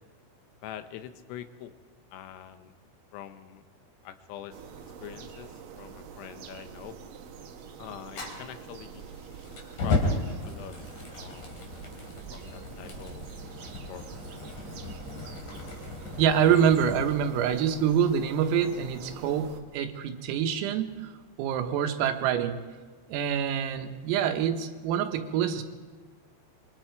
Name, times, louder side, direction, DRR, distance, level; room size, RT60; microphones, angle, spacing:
voice 1, 0.6-1.7 2.1-2.7 3.1-3.6 4.0-4.6 5.0-7.0 7.8-9.1 9.8-10.8 11.2-11.7 12.3-13.3 13.7-14.1, left 11 dB, 80° left, 9 dB, 3.7 m, -44 dB
sound 1, 4.5-19.6, right 7 dB, 70° right, 2.2 m, -45 dB
Fire, 8.1-17.1, left 3 dB, 40° left, 4.0 m, -35 dB
voice 2, 16.2-21.1 21.4-22.6 23.1-25.6, right 8 dB, 85° right, 7 dB, 4.0 m, -26 dB
26.5 x 24.0 x 4.7 m, 1.4 s
omnidirectional pair, 5.9 m